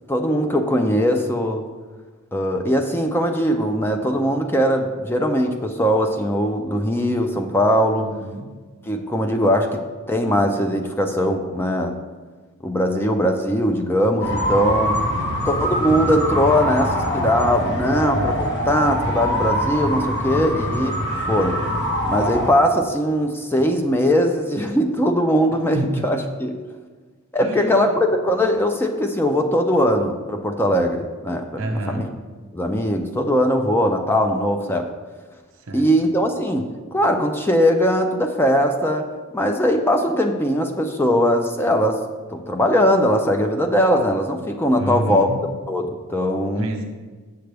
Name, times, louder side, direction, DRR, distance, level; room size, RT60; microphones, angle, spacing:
voice 1, 0.1-1.6 2.3-8.1 8.9-9.8 10.1-11.9 12.6-15.0 15.5-21.6 22.1-26.6 27.3-31.6 31.9-32.1 32.5-34.9 35.7-39.1 39.3-42.0 42.3-45.3 45.7-46.7, equal, 10° left, 4 dB, 0.4 m, -20 dB
voice 2, 7.9-8.5 15.1-15.4 17.2-17.3 25.7-26.1 27.4-28.0 31.6-32.1 35.6-35.9 44.8-45.4 46.5-46.9, right 1 dB, 60° right, 4 dB, 1.0 m, -29 dB
sound 1, 14.2-22.5, equal, 50° left, 1.3 m, -23 dB
7.8 x 6.8 x 3.4 m, 1.4 s
head